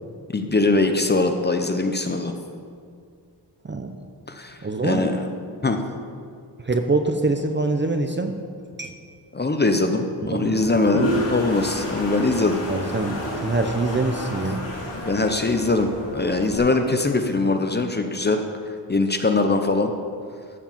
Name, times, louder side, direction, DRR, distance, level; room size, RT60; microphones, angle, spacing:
voice 1, 0.3-2.3 4.3-5.3 5.6-5.8 9.3-12.6 14.9-19.9, left 3 dB, 25° left, 6 dB, 0.7 m, -22 dB
voice 2, 4.6-5.1 6.6-8.3 8.8-8.9 10.3-10.5 12.7-14.7, right 3 dB, 25° right, 6 dB, 0.6 m, -24 dB
Toilet flush, 10.4-16.6, equal, 90° left, 2.2 m, -30 dB
13.5 x 4.7 x 7.2 m, 2.2 s
wide cardioid pair, 125°, 42 cm